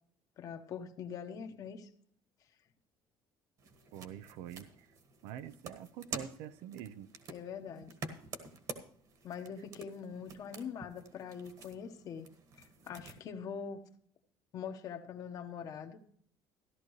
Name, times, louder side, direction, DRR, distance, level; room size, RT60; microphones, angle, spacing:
voice 1, 0.4-1.9 7.3-7.9 9.2-12.3 12.6-13.8 14.5-16.0, left 7 dB, 40° left, 1.1 m, -43 dB
sound 1, 3.6-13.2, right 4 dB, 45° right, 1.4 m, -48 dB
voice 2, 3.9-4.9 5.2-7.1, right 10 dB, 85° right, 0.6 m, -45 dB
14.5 x 12.0 x 3.1 m
cardioid pair, 160°, 9 cm